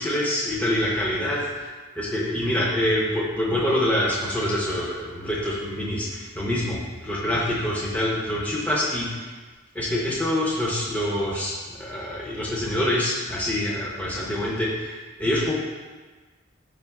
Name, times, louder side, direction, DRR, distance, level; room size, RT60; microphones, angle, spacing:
voice 1, 0.0-9.3 9.7-11.5 11.8-15.5, left 1 dB, 5° left, -5 dB, 0.5 m, -26 dB
3.3 x 2.6 x 4.1 m, 1.3 s
head